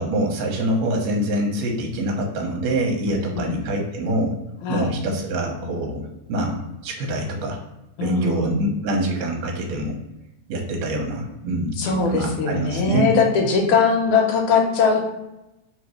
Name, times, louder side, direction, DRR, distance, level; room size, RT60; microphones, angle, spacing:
voice 1, 0.0-4.4 4.7-7.6 8.0-10.0 10.5-13.1, right 1 dB, 70° right, 0 dB, 1.9 m, -25 dB
voice 2, 4.6-5.0 8.0-8.6 11.8-15.0, left 5 dB, 85° left, 2 dB, 2.2 m, -20 dB
4.4 x 3.2 x 3.1 m, 0.92 s
omnidirectional pair, 3.5 m